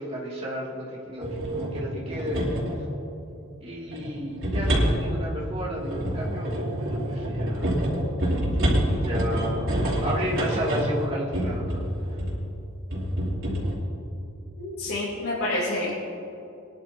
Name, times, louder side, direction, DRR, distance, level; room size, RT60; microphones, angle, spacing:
voice 1, 0.0-2.4 3.6-7.8 8.9-11.8, equal, 25° right, -6 dB, 2.6 m, -33 dB
sound 1, 1.2-2.8 3.9-12.4 12.9-13.7, equal, 65° right, 3.6 m, -27 dB
voice 2, 14.6-16.0, left 1 dB, 90° left, -9 dB, 3.6 m, -28 dB
23.5 x 11.0 x 3.0 m, 2.8 s
head